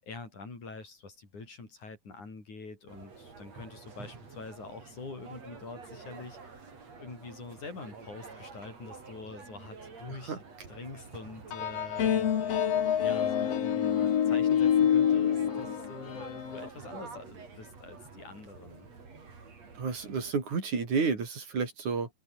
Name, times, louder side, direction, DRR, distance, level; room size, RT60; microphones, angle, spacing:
voice 1, 0.0-6.7 7.0-10.4 10.7-18.9, left 3 dB, 85° left, 8.6 m, -45 dB
sound 1, 2.9-20.3, right 4 dB, 60° right, 5.9 m, -48 dB
sound 2, 11.5-16.7, left 9 dB, 60° left, 2.7 m, -27 dB
voice 2, 19.8-22.1, right 5 dB, 80° right, 6.1 m, -30 dB
omnidirectional pair, 3.4 m